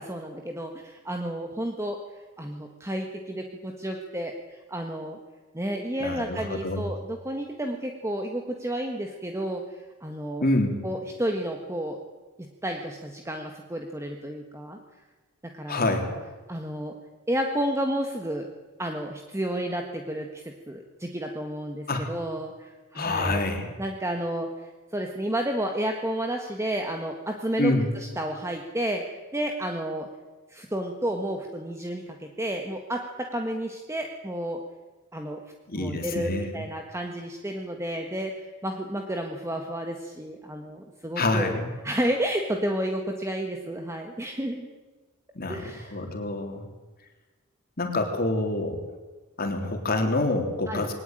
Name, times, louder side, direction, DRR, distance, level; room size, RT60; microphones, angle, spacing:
voice 1, 0.0-2.0 2.4-5.2 5.5-10.4 10.8-12.0 12.4-14.8 15.4-15.9 16.5-17.0 17.3-18.5 18.8-23.4 23.8-30.1 30.5-34.6 35.1-35.4 35.7-41.6 41.8-44.7 45.5-46.0 50.7-50.9, right 1 dB, 15° right, 3 dB, 1.6 m, -31 dB
voice 2, 6.0-6.8 10.4-10.8 15.7-16.2 21.9-22.0 22.9-23.7 27.6-27.9 35.7-36.6 41.2-41.7 45.4-46.6 47.8-48.8 49.4-50.9, left 2 dB, 45° left, 4 dB, 3.5 m, -27 dB
21.5 x 18.5 x 9.1 m, 1.2 s
head